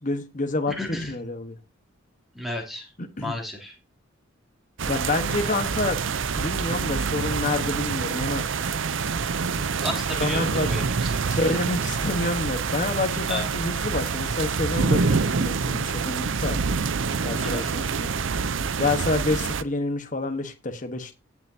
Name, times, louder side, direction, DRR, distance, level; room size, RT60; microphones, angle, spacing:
voice 1, 0.0-1.5 3.0-3.4 4.9-6.0 6.4-8.5 10.2-10.7 11.3-16.7 17.2-18.1 18.8-21.1, left 2 dB, 40° left, 7 dB, 1.3 m, -28 dB
voice 2, 0.7-1.1 2.3-2.9 3.2-3.7 9.8-11.4 13.3-13.5 17.4-17.6, left 1 dB, ahead, 0 dB, 3.2 m, -33 dB
sound 1, 4.8-19.6, right 5 dB, 65° right, 0.6 m, -26 dB
18.0 x 7.3 x 2.8 m, 0.26 s
head